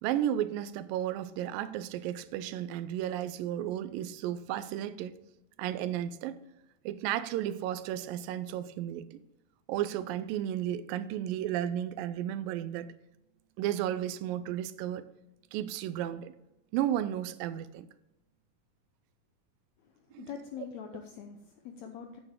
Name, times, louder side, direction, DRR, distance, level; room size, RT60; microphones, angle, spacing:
voice 1, 0.0-5.2 5.6-6.4 6.9-9.2 9.7-12.9 13.6-15.1 15.5-16.3 16.7-17.9 20.1-20.3, right 11 dB, 85° right, 2.3 m, -33 dB
voice 2, 19.8-22.2, left 7 dB, 80° left, 1.6 m, -44 dB
8.7 x 8.7 x 3.7 m
omnidirectional pair, 4.0 m